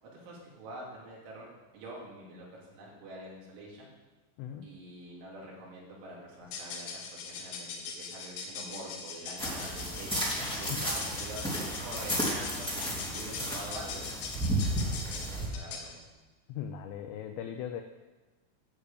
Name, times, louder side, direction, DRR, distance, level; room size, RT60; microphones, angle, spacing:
voice 1, 0.0-3.9 4.6-10.3 10.6-14.1 14.7-16.1, right 1 dB, 65° right, -4 dB, 5.1 m, -46 dB
voice 2, 4.4-4.7 10.7-10.9 14.9-15.0 15.3-15.6 16.5-17.8, left 9 dB, 90° left, 6 dB, 2.5 m, -39 dB
sound 1, 6.4-16.0, left 5 dB, 70° left, 3.7 m, -41 dB
sound 2, 9.4-15.4, right 1 dB, ahead, 1.2 m, -33 dB
11.5 x 6.4 x 8.4 m, 1.2 s
omnidirectional pair, 5.9 m